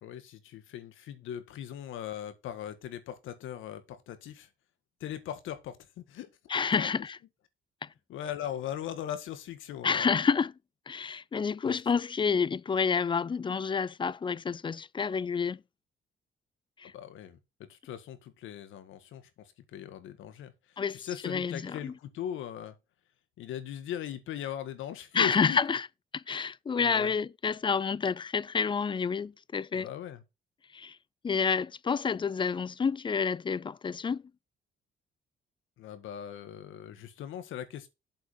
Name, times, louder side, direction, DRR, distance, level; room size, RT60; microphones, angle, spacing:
voice 1, 0.0-4.5 5.0-6.3 6.7-6.9 8.1-10.1 11.6-11.8 16.8-17.4 17.7-20.5 20.9-22.7 23.4-25.6 26.8-27.1 29.7-30.2 35.8-37.9, left 10 dB, 85° left, 1.6 m, -39 dB
voice 2, 6.5-7.2 7.8-7.9 9.8-10.5 10.9-15.6 16.8-16.9 20.8-21.0 21.2-21.9 25.1-25.9 26.1-29.9 30.7-31.0 31.2-34.2, left 6 dB, 25° left, 0.4 m, -29 dB
7.7 x 5.2 x 5.5 m
cardioid pair, 90°, 20 cm